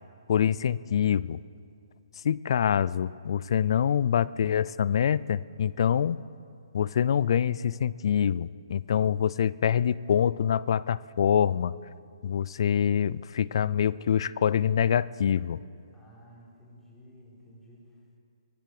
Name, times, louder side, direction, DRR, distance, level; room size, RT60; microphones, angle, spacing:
voice 1, 0.3-1.4 2.2-6.2 6.7-11.7 12.2-15.6, left 8 dB, 60° left, 20 dB, 0.4 m, -25 dB
voice 2, 15.9-18.2, equal, 5° left, -6 dB, 4.5 m, -53 dB
23.0 x 10.5 x 4.9 m, 2.4 s
hypercardioid pair, 140°, 3 cm